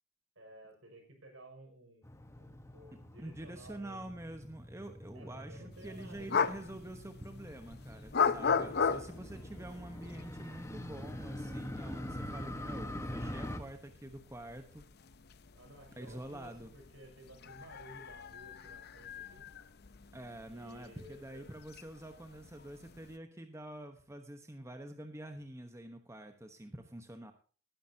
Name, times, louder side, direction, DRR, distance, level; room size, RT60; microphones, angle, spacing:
voice 1, 0.4-2.1 2.4-4.1 5.1-6.6 15.5-19.5 20.5-21.4, right 1 dB, 70° right, 2 dB, 5.9 m, -55 dB
Motorcycle, 2.0-13.6, left 1 dB, 15° left, 1.3 m, -45 dB
voice 2, 2.9-14.9 16.0-16.7 20.1-27.3, right 1 dB, 15° right, 6 dB, 1.1 m, -47 dB
sound 1, 5.7-23.2, left 6 dB, 50° left, 0.7 m, -39 dB
19.5 x 10.5 x 2.8 m, 0.39 s
head